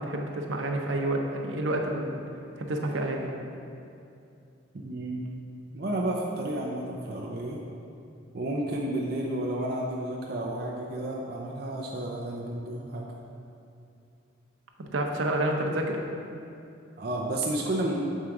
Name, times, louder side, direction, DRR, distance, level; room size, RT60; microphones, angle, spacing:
voice 1, 0.0-2.2 2.6-3.3 14.9-16.0, right 1 dB, 90° right, 1 dB, 0.7 m, -29 dB
voice 2, 4.7-5.3 5.7-7.6 8.3-13.1 17.0-17.9, right 1 dB, 55° right, -2 dB, 0.5 m, -31 dB
7.3 x 4.6 x 3.7 m, 2.6 s
head